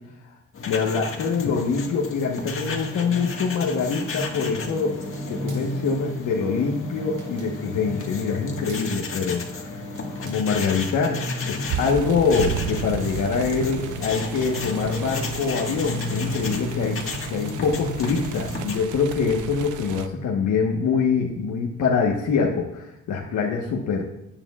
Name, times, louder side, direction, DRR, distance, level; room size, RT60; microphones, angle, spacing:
sound 1, 0.5-18.8, left 3 dB, 45° left, 1.7 m, -32 dB
voice 1, 0.7-5.0 5.3-9.8 10.2-17.0 17.3-24.0, left 5 dB, 75° left, -1 dB, 1.3 m, -24 dB
sound 2, 4.6-10.3, right 1 dB, 40° right, 3.6 m, -40 dB
sound 3, 11.7-20.1, right 10 dB, 80° right, 0.7 m, -34 dB
16.5 x 9.0 x 2.4 m, 0.83 s
cardioid pair, 90°, 30 cm